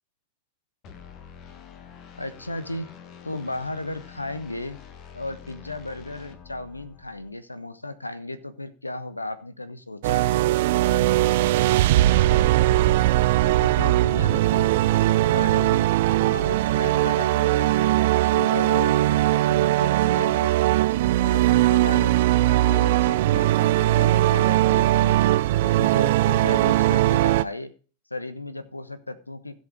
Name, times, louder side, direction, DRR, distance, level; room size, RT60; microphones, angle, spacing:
sound 1, 0.8-7.3, left 7 dB, 35° left, 1.5 m, -46 dB
voice 1, 2.2-2.9 3.2-4.8 5.1-10.5 10.9-11.1 13.4-14.9 15.3-15.9 16.2-17.9 18.2-20.5 21.2-25.2 25.6-27.7 28.1-29.6, left 2 dB, 85° left, 12 dB, 1.1 m, -35 dB
sound 2, 10.0-27.4, right 15 dB, 55° right, 0.4 m, -20 dB
15.5 x 5.5 x 4.9 m, 0.38 s
figure-of-eight pair, 90°, 0 cm